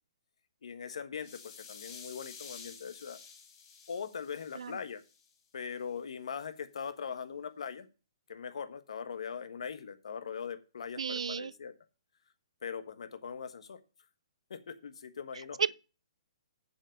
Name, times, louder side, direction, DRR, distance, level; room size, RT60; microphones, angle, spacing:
voice 1, 0.6-3.2 3.9-5.0 5.5-7.9 8.3-11.7 12.6-13.8 14.5-15.6, left 6 dB, 70° left, 1.4 m, -41 dB
sound 1, 1.2-5.3, left 6 dB, 30° left, 4.0 m, -51 dB
voice 2, 11.0-11.5 15.6-15.7, right 6 dB, 85° right, 0.5 m, -32 dB
7.3 x 7.2 x 6.4 m
hypercardioid pair, 155°, 3 cm